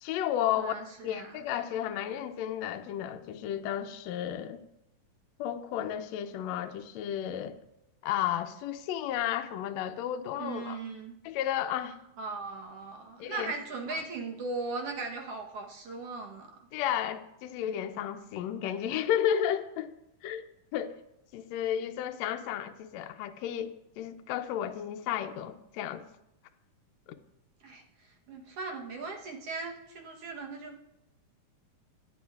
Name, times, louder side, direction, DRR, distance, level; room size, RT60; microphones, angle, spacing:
voice 1, 0.0-0.8 1.0-4.6 5.4-7.6 8.0-10.8 11.2-12.0 13.2-13.5 13.8-14.0 16.7-19.9 20.2-20.4 20.7-20.9 21.3-26.1 27.1-27.2, left 10 dB, 75° left, 1.7 m, -33 dB
voice 2, 0.6-1.4 10.4-11.1 12.2-16.5 27.6-27.8 28.3-30.8, right 3 dB, 60° right, 1.9 m, -38 dB
19.0 x 8.7 x 2.4 m
omnidirectional pair, 3.5 m